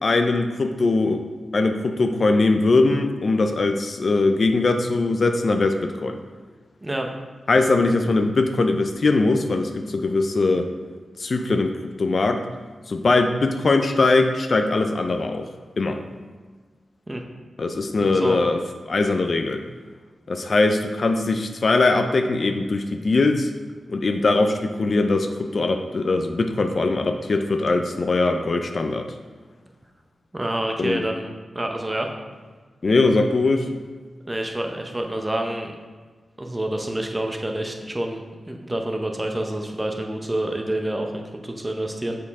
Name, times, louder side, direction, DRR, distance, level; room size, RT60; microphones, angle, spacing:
voice 1, 0.0-1.2 1.5-6.2 7.5-10.7 11.2-12.4 12.9-15.5 15.8-16.0 17.6-18.6 18.9-19.6 20.3-23.5 23.9-29.1 30.8-31.0 32.8-33.7, left 3 dB, 50° left, 6 dB, 0.4 m, -21 dB
voice 2, 18.0-18.4 30.3-32.1 34.3-35.7 36.4-42.2, right 1 dB, 20° right, 3 dB, 0.8 m, -28 dB
6.9 x 4.7 x 3.6 m, 1.4 s
wide cardioid pair, 90°, 0 cm